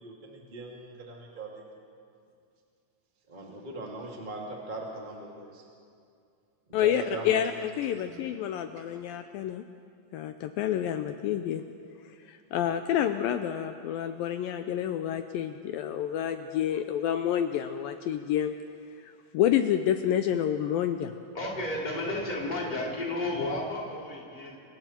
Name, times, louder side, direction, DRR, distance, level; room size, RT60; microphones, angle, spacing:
voice 1, 0.0-1.6 3.3-5.6 6.8-7.4 7.9-8.2, right 2 dB, 15° right, -2 dB, 2.1 m, -40 dB
voice 2, 6.7-9.6 10.1-11.6 12.3-18.5 19.0-21.1, left 10 dB, 80° left, 8 dB, 2.1 m, -28 dB
voice 3, 21.3-24.6, left 2 dB, 10° left, -4 dB, 3.5 m, -32 dB
29.5 x 23.5 x 4.5 m, 2.4 s
omnidirectional pair, 4.7 m